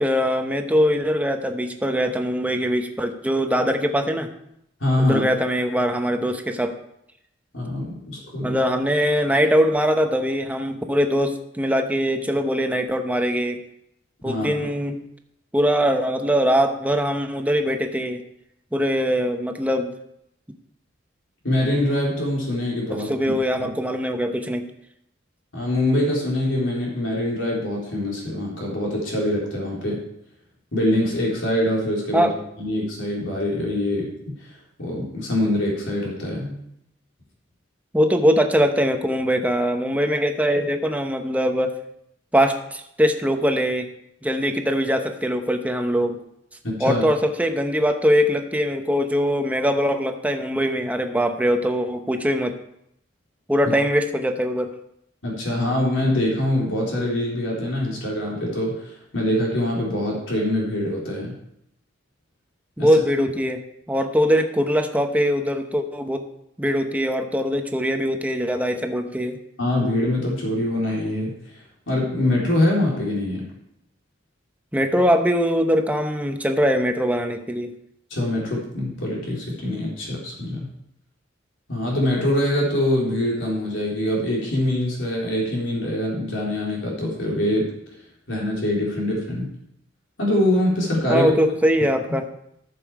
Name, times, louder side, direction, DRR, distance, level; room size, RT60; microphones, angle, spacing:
voice 1, 0.0-4.3 5.0-6.7 8.4-13.6 14.2-15.0 15.5-18.2 18.7-19.9 22.9-24.7 32.1-32.3 37.9-41.8 42.3-43.9 44.2-46.2 46.8-52.5 53.5-54.7 62.8-66.2 66.6-69.4 74.7-77.7 91.1-92.3, equal, 10° right, 5 dB, 0.9 m, -22 dB
voice 2, 4.8-5.2 7.5-8.6 14.2-14.5 21.4-23.7 25.5-30.0 30.7-32.3 32.6-34.1 34.8-36.6 46.6-47.0 55.2-61.3 62.8-62.9 69.6-71.3 71.9-73.5 78.1-80.7 81.7-87.7 88.3-89.5 90.2-91.3, left 1 dB, 80° left, -3 dB, 3.8 m, -24 dB
14.0 x 6.9 x 4.8 m, 0.77 s
head